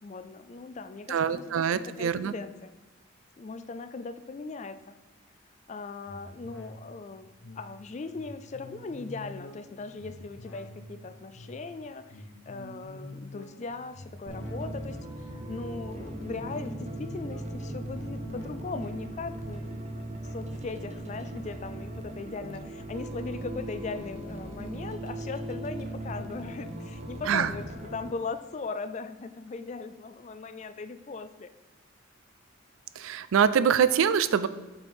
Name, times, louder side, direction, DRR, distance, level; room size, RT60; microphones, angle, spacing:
voice 1, 0.0-1.6 2.0-2.7 3.4-5.0 5.7-7.3 7.6-27.7 27.9-31.5, left 4 dB, 35° left, 11 dB, 0.3 m, -39 dB
voice 2, 1.1-2.3 27.3-27.5 33.0-34.5, right 7 dB, 75° right, 14 dB, 0.4 m, -24 dB
sound 1, 6.1-21.8 22.2-22.3, left 1 dB, 70° left, 1.0 m, -48 dB
sound 2, 14.3-28.1, right 1 dB, 30° right, 0.6 m, -38 dB
5.6 x 4.4 x 5.2 m, 1.2 s
head